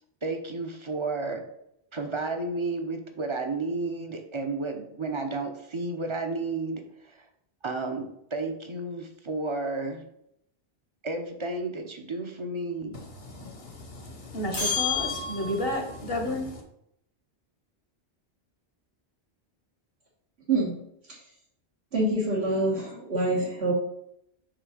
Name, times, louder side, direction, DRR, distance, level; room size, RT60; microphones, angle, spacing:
voice 1, 0.2-1.4 1.9-6.8 7.1-7.2 7.6-10.0 11.0-12.9, right 3 dB, 30° right, 5 dB, 0.7 m, -32 dB
voice 2, 13.2-16.6, left 1 dB, 65° left, 4 dB, 1.3 m, -32 dB
sound 1, 14.5-15.9, left 6 dB, 85° left, 2.2 m, -30 dB
voice 3, 21.9-23.7, right 2 dB, 80° right, -9 dB, 1.8 m, -26 dB
5.8 x 3.7 x 4.9 m, 0.76 s
omnidirectional pair, 1.1 m